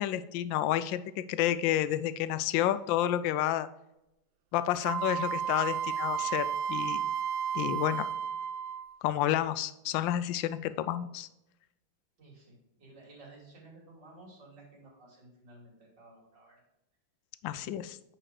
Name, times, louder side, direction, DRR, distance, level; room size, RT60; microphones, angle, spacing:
voice 1, 0.0-3.7 4.5-7.0 7.5-8.1 9.0-11.3 17.4-18.0, left 12 dB, 75° left, 13 dB, 1.2 m, -30 dB
Wind instrument woodwind instrument, 4.8-9.0, right 8 dB, 80° right, 1.3 m, -32 dB
voice 2, 12.2-12.5 12.8-16.6, right 2 dB, 60° right, -3 dB, 3.5 m, -54 dB
9.0 x 4.5 x 4.8 m, 0.88 s
omnidirectional pair, 2.2 m